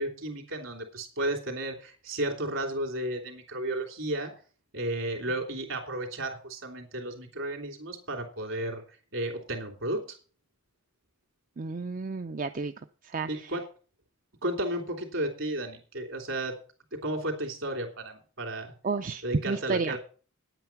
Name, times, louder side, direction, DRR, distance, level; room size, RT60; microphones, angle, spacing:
voice 1, 0.0-4.3 4.7-8.8 9.1-10.0 13.3-13.6 14.4-16.6 17.0-18.7 19.2-20.0, right 1 dB, 65° right, 2 dB, 3.1 m, -33 dB
voice 2, 11.6-12.7 13.0-13.3 18.8-20.0, right 4 dB, 40° right, 9 dB, 0.5 m, -31 dB
9.8 x 9.1 x 5.9 m, 0.39 s
head